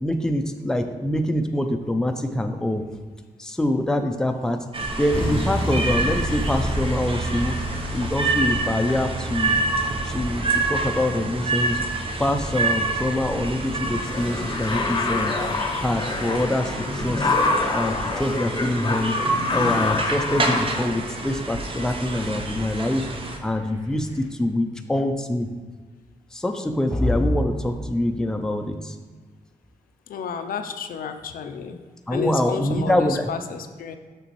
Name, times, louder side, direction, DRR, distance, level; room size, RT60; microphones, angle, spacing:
voice 1, 0.0-2.8 3.4-4.6 5.0-7.6 7.9-9.6 10.0-11.8 12.2-15.4 15.8-17.3 17.7-23.1 23.4-25.5 26.3-29.0 32.1-33.3, left 1 dB, 5° left, 5 dB, 0.5 m, -25 dB
sound 1, 4.7-23.4, right 3 dB, 40° right, 0.8 m, -28 dB
sound 2, 5.1-24.3, equal, 20° right, 2.0 m, -34 dB
sound 3, 13.7-20.9, left 3 dB, 30° left, 0.8 m, -27 dB
voice 2, 30.1-31.8 32.1-34.0, left 6 dB, 80° left, 7 dB, 0.5 m, -31 dB
6.6 x 6.1 x 3.1 m, 1.5 s
cardioid pair, 105°, 15 cm